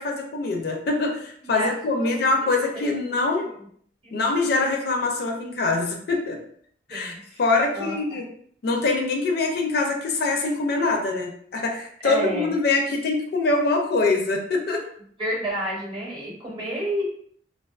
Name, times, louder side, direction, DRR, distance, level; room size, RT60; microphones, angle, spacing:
voice 1, 0.0-3.5 4.1-6.4 6.9-7.1 7.4-8.2 8.6-14.8, left 3 dB, 55° left, 2 dB, 0.4 m, -24 dB
voice 2, 1.4-2.1 2.5-2.6 3.4-3.7 4.0-4.2 6.9-7.4 7.7-8.2 12.0-12.5 15.2-17.1, equal, 25° right, -4 dB, 0.7 m, -30 dB
2.3 x 2.3 x 2.3 m, 0.63 s
head